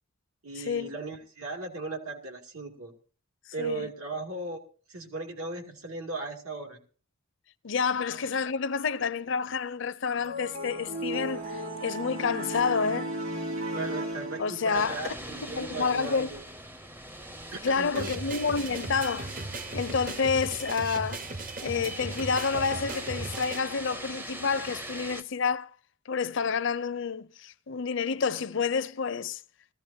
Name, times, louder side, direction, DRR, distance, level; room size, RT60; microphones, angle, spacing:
voice 1, 0.4-2.9 3.5-4.6 4.9-6.8 13.7-16.4 17.5-18.1, right 2 dB, 80° right, 2.6 m, -37 dB
voice 2, 3.6-3.9 7.6-13.1 14.4-15.0 15.4-16.3 17.6-19.3 19.7-21.2 21.6-25.7 26.1-29.4, left 5 dB, 55° left, 0.5 m, -29 dB
sound 1, 10.2-14.9, right 1 dB, 65° right, 3.7 m, -35 dB
sound 2, 14.7-25.2, right 1 dB, 10° right, 0.6 m, -42 dB
sound 3, 18.0-23.6, right 3 dB, 40° right, 0.8 m, -37 dB
19.5 x 14.5 x 2.8 m
head